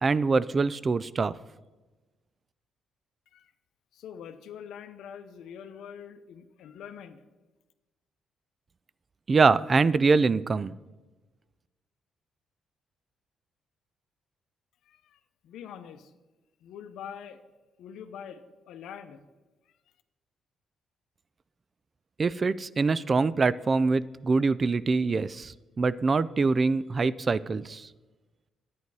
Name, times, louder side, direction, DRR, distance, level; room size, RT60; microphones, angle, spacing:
voice 1, 0.0-1.3 9.3-10.7 22.2-27.9, right 4 dB, 35° right, 19 dB, 0.3 m, -24 dB
voice 2, 3.9-7.2 14.9-16.1 16.6-17.4 17.8-19.2, left 8 dB, 80° left, 9 dB, 0.7 m, -44 dB
10.5 x 9.4 x 4.8 m, 1.2 s
cardioid pair, 90°, 0 cm